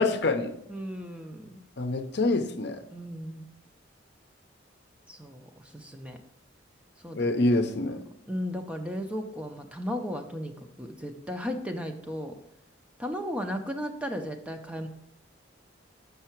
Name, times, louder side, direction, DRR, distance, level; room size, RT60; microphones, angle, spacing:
voice 1, 0.0-0.5 1.8-2.8 7.1-8.0, left 2 dB, 60° left, 0.6 m, -26 dB
voice 2, 0.7-1.6 2.9-3.5 5.1-6.2 7.0-7.3 8.3-12.3 13.0-14.9, equal, 5° right, 0.5 m, -35 dB
6.7 x 5.6 x 4.5 m
head